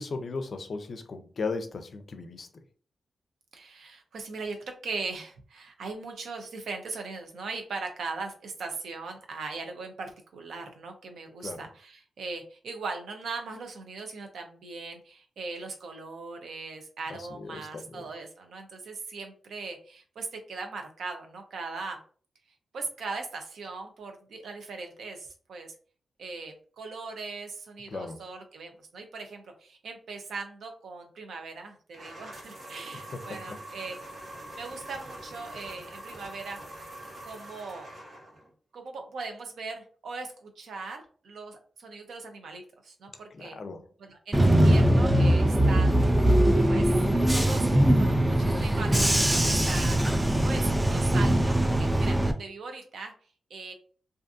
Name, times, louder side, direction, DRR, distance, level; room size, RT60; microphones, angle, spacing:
voice 1, 0.0-2.5 11.4-11.7 17.1-18.1 27.9-28.2 33.1-33.6 43.3-43.9, left 4 dB, 60° left, 8 dB, 0.4 m, -37 dB
voice 2, 3.5-22.0 22.7-25.8 26.2-33.9 34.6-36.6 37.2-37.9 38.7-43.6 44.0-46.1 46.7-47.0 47.3-47.7 48.0-50.0 50.4-53.1 53.5-53.7, right 4 dB, 85° right, 4 dB, 0.5 m, -39 dB
sound 1, 31.9-38.5, right 1 dB, 60° right, 1.2 m, -44 dB
Bus / Engine, 44.3-52.3, right 1 dB, 15° right, 0.3 m, -22 dB
2.5 x 2.5 x 2.4 m, 0.43 s
cardioid pair, 80°, 0 cm